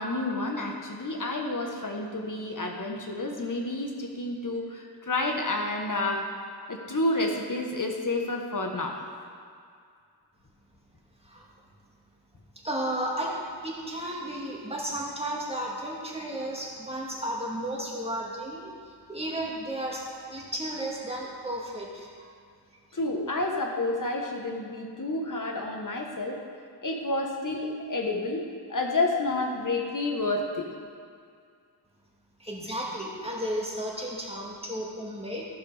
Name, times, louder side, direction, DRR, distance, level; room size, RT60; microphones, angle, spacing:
voice 1, 0.0-6.2 6.7-9.0 22.9-26.4 26.8-30.7, left 2 dB, 50° left, 1 dB, 1.5 m, -30 dB
voice 2, 12.6-13.3 13.6-22.3 32.4-35.5, right 1 dB, 15° right, -4 dB, 2.1 m, -33 dB
14.5 x 6.0 x 5.0 m, 2.3 s
wide cardioid pair, 60°, 41 cm